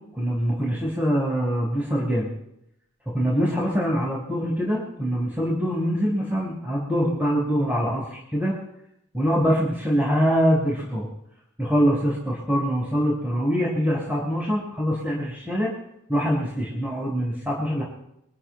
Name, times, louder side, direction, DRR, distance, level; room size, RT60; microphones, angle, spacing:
voice 1, 0.1-2.3 3.1-8.6 9.1-11.1 11.6-15.7 16.1-17.8, equal, 10° right, -4 dB, 4.7 m, -24 dB
25.5 x 14.5 x 2.2 m, 0.79 s
head